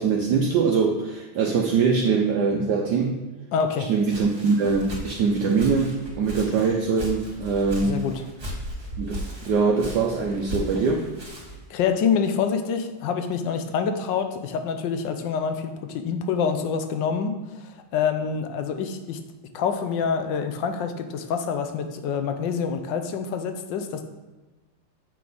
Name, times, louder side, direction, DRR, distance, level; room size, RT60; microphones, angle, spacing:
voice 1, 0.0-3.2 3.9-8.0 9.0-11.1, right 5 dB, 70° right, 1 dB, 1.1 m, -23 dB
voice 2, 3.5-3.9 7.8-8.1 11.7-19.2 19.5-24.0, left 6 dB, 70° left, 7 dB, 1.3 m, -26 dB
Walk footsteps, 3.7-11.7, equal, 30° right, 1.9 m, -37 dB
7.6 x 5.3 x 3.9 m, 1.2 s
omnidirectional pair, 2.2 m